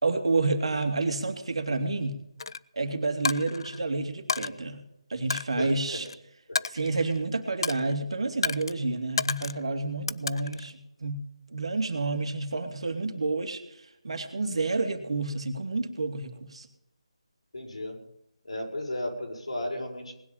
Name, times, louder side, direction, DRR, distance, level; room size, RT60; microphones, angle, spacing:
voice 1, 0.0-2.2 2.7-4.8 5.1-6.1 6.7-11.2 11.5-16.7, right 3 dB, 65° right, 6 dB, 2.5 m, -29 dB
Coin (dropping), 2.4-2.6 3.3-3.8 4.3-4.5 5.3-6.2 6.6-7.2 7.6-7.9 8.4-8.7 9.2-9.6 10.1-10.7, left 5 dB, 50° left, 0.5 m, -31 dB
voice 2, 5.6-6.0 17.5-18.0 18.4-20.1, left 1 dB, 80° left, 1 dB, 6.3 m, -34 dB
19.5 x 10.0 x 5.7 m, 0.82 s
figure-of-eight pair, 160°, 3 cm